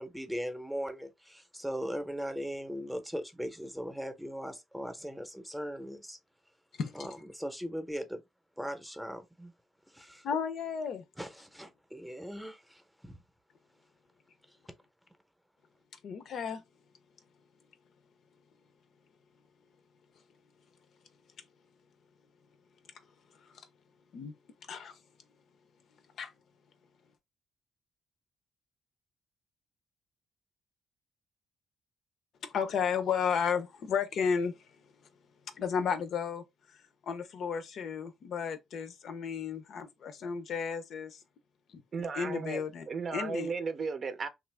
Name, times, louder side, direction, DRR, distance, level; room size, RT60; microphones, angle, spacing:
voice 1, 0.0-6.2 6.9-8.2 8.6-9.5 9.9-10.2 11.2-13.2, equal, ahead, 0.7 m, -39 dB
voice 2, 10.2-11.0 16.0-16.6 23.4-23.7 24.1-24.3 24.7-25.0 26.2-26.3 32.4-34.7 35.5-41.2 41.7-41.8 42.1-42.9 43.1-43.5, left 6 dB, 65° left, 0.6 m, -33 dB
voice 3, 41.9-44.3, right 5 dB, 45° right, 0.6 m, -35 dB
2.9 x 2.5 x 3.3 m
cardioid pair, 90°, 0 cm